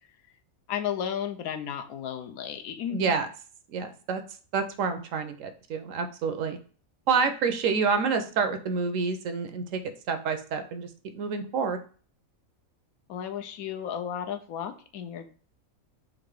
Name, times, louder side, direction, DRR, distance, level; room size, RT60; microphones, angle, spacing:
voice 1, 0.7-3.2 13.1-15.3, left 9 dB, 85° left, 8 dB, 1.1 m, -33 dB
voice 2, 2.9-3.3 3.7-4.2 4.5-6.6 7.1-9.8 10.1-11.8, right 5 dB, 70° right, 8 dB, 0.9 m, -28 dB
3.8 x 2.6 x 4.7 m, 0.40 s
omnidirectional pair, 1.5 m